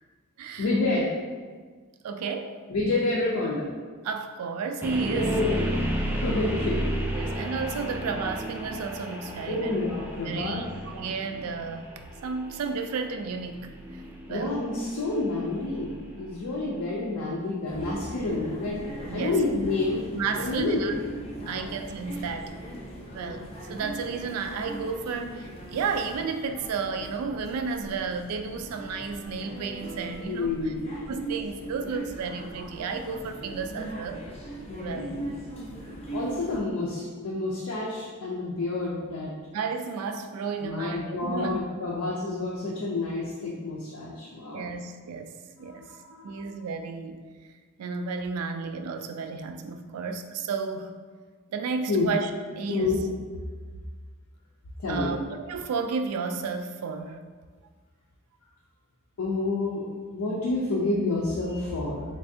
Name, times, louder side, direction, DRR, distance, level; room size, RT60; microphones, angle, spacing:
voice 1, 0.6-1.1 2.7-3.7 5.1-5.6 6.1-6.9 9.5-10.6 14.3-18.8 19.1-20.0 20.4-20.9 21.5-21.7 30.3-30.8 34.7-35.3 36.1-39.3 40.6-44.7 45.6-46.4 51.9-52.1 52.7-53.0 54.8-55.1 59.2-59.9 60.1-62.0, left 2 dB, 80° left, -5 dB, 0.5 m, -29 dB
voice 2, 2.0-2.6 4.0-5.5 7.1-9.8 10.3-14.0 14.3-14.6 19.1-19.4 20.1-20.9 21.5-22.5 23.1-30.7 31.1-34.2 34.8-35.1 39.5-41.6 44.5-45.3 45.6-46.0 46.2-47.2 47.8-50.9 51.5-53.0 54.9-57.2, right 5 dB, 85° right, 7 dB, 0.3 m, -32 dB
sound 1, 4.8-16.8, equal, 10° right, 0.4 m, -33 dB
sound 2, 17.7-36.6, right 2 dB, 30° left, 0.7 m, -39 dB
3.4 x 3.2 x 2.7 m, 1.5 s
head